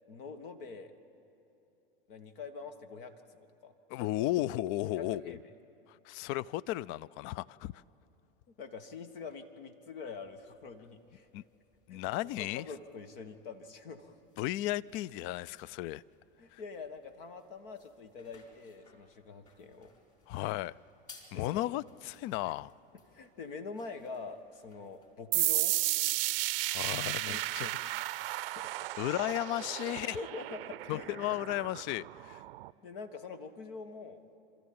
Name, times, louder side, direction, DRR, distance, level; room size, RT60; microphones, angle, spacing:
voice 1, 0.1-0.9 2.1-3.1 3.6-3.7 4.9-5.4 8.6-11.3 11.9-12.0 12.4-14.2 16.4-19.9 21.3-21.7 22.4-22.5 23.1-25.7 27.3-28.1 28.5-28.7 29.9-31.3 32.8-34.2, left 4 dB, 65° left, 9 dB, 1.5 m, -45 dB
voice 2, 3.9-5.4 6.0-7.7 11.3-11.4 11.9-12.6 14.4-16.0 16.5-16.6 20.3-20.7 21.3-22.7 26.7-27.7 29.0-30.2 30.9-32.4, left 15 dB, 45° left, 23 dB, 0.4 m, -34 dB
sound 1, 10.2-25.3, left 4 dB, 25° left, 4.6 m, -63 dB
sound 2, 25.3-32.7, right 16 dB, 75° right, 0.6 m, -34 dB
27.5 x 13.5 x 8.7 m, 3.0 s
hypercardioid pair, 95°, 29 cm